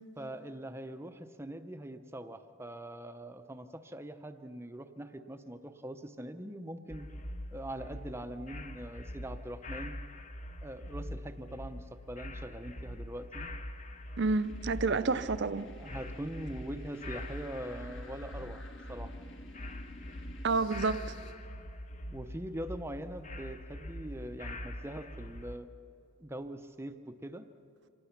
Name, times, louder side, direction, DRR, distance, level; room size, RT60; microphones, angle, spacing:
voice 1, 0.2-7.1 7.5-10.0 10.6-13.5 14.9-15.2 15.8-18.6 18.9-19.1 22.1-25.7 26.2-27.5, right 1 dB, 10° right, 0.6 m, -42 dB
sound 1, 6.9-25.6, left 1 dB, 30° left, 0.8 m, -43 dB
sound 2, 13.2-21.3, left 2 dB, 55° left, 1.9 m, -52 dB
voice 2, 14.2-15.7 20.4-21.0, right 4 dB, 50° right, 0.6 m, -29 dB
26.0 x 19.5 x 5.9 m
head